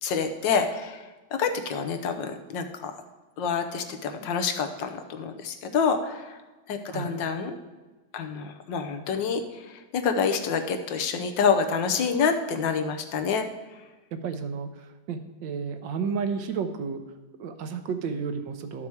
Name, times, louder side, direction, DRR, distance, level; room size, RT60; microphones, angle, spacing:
voice 1, 0.0-1.0 1.3-2.9 3.4-6.4 6.7-7.6 8.1-9.4 9.9-13.5, left 6 dB, 85° left, 7 dB, 1.6 m, -27 dB
voice 2, 14.1-17.0 17.4-18.9, right 5 dB, 90° right, 8 dB, 1.5 m, -32 dB
12.0 x 5.9 x 4.6 m, 1.2 s
omnidirectional pair, 1.9 m